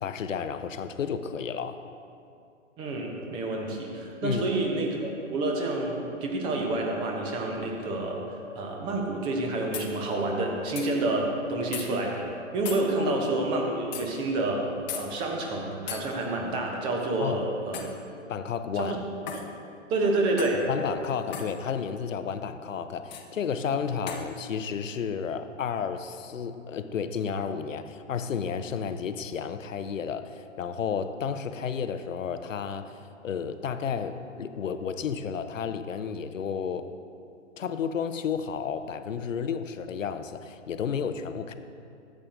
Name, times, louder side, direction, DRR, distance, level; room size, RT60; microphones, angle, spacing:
voice 1, 0.0-1.8 4.2-4.4 13.0-13.1 17.2-17.4 18.3-19.0 20.7-36.9 37.6-41.5, left 7 dB, 80° left, 10 dB, 0.6 m, -32 dB
voice 2, 2.8-8.2 8.5-12.3 12.5-14.7 14.9-17.9 18.8-19.0 19.9-20.7, right 2 dB, 15° right, 0 dB, 0.6 m, -28 dB
sound 1, 9.7-9.9 10.8-10.9 11.7-11.9 12.7-12.8 13.9-14.1 14.9-15.1 15.9-16.0 17.7-18.0 19.3-19.5 20.4-20.6 21.3-21.5 23.1-23.3 24.1-24.3, left 7 dB, 35° left, 0.8 m, -36 dB
12.5 x 7.5 x 2.5 m, 2.5 s
figure-of-eight pair, 130°, 39 cm